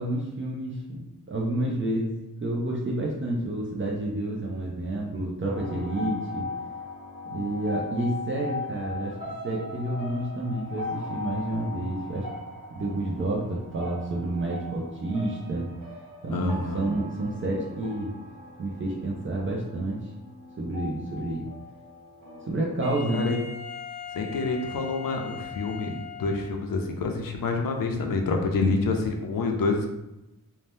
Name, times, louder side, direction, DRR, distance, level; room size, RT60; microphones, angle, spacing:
voice 1, 0.0-6.5 7.3-9.2 9.4-12.3 12.7-15.7 16.2-18.1 18.6-20.1 20.6-21.5 22.5-23.3 28.6-28.9, right 1 dB, 35° right, -3 dB, 0.4 m, -29 dB
sound 1, 5.5-23.6, left 2 dB, 65° right, 1.2 m, -39 dB
voice 2, 16.3-16.9 23.1-23.4 24.1-29.9, left 3 dB, 70° left, 3 dB, 0.5 m, -27 dB
Wind instrument woodwind instrument, 22.8-26.7, left 7 dB, 25° left, 0.5 m, -40 dB
2.7 x 2.1 x 3.3 m, 0.94 s
wide cardioid pair, 155°, 35 cm